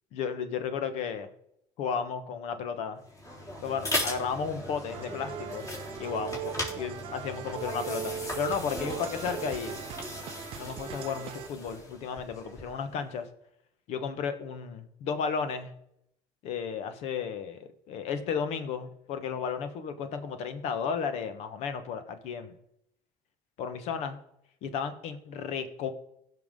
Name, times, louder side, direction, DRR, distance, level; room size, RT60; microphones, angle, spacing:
voice 1, 0.1-1.3 1.8-3.0 3.6-5.7 6.0-9.8 10.6-13.3 13.9-15.7 16.4-22.5 23.6-24.2 24.6-25.9, left 6 dB, 65° left, 10 dB, 1.2 m, -33 dB
sound 1, 3.0-12.9, left 1 dB, 25° left, 3.6 m, -38 dB
sound 2, 4.9-11.5, right 12 dB, 50° right, 0.5 m, -40 dB
16.5 x 5.9 x 3.7 m, 0.74 s
supercardioid pair, 100°, 12 cm